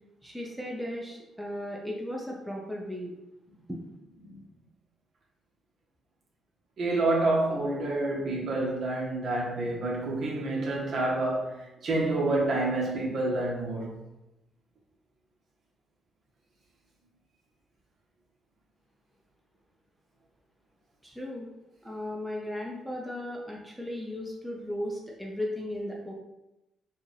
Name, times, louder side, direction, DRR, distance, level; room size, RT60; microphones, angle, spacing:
voice 1, 0.2-3.1 3.7-3.8 21.0-21.5 21.8-26.1, left 1 dB, 5° right, 0.7 m, -36 dB
voice 2, 6.8-13.9, right 2 dB, 55° right, 1.3 m, -28 dB
4.7 x 2.5 x 3.4 m
cardioid pair, 90°, 0 cm